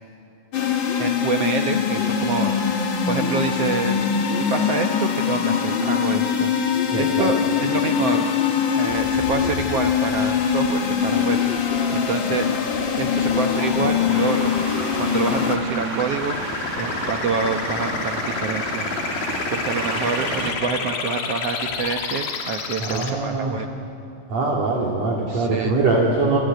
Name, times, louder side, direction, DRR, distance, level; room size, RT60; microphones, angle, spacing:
sound 1, 0.5-15.6, left 7 dB, 45° left, 1.7 m, -22 dB
voice 1, 1.0-4.2 4.5-8.2 8.8-12.5 13.0-14.5 15.0-19.1 19.5-23.7 25.3-25.8, right 5 dB, 70° right, 4 dB, 1.5 m, -27 dB
voice 2, 6.9-7.3 22.8-23.6 24.3-26.4, right 3 dB, 50° right, -4 dB, 3.7 m, -22 dB
sound 2, 8.9-23.1, left 5 dB, 85° left, 4.0 m, -31 dB
sound 3, 14.1-20.5, right 4 dB, 90° right, 4.2 m, -32 dB
26.5 x 24.0 x 9.3 m, 2.7 s
omnidirectional pair, 4.1 m